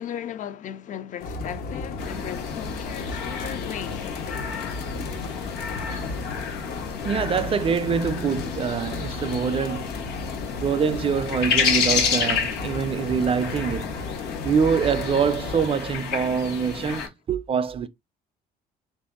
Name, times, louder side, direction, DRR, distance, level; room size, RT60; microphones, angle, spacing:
voice 1, 0.0-4.8, left 9 dB, 50° left, 0.4 m, -37 dB
sound 1, 1.2-15.7, left 4 dB, 70° left, 0.8 m, -34 dB
sound 2, 2.0-17.1, left 6 dB, 90° left, 1.1 m, -30 dB
voice 2, 7.0-9.9 10.6-13.9 14.4-17.9, right 6 dB, 35° right, 0.4 m, -25 dB
3.4 x 2.6 x 3.6 m
cardioid pair, 110°, 17 cm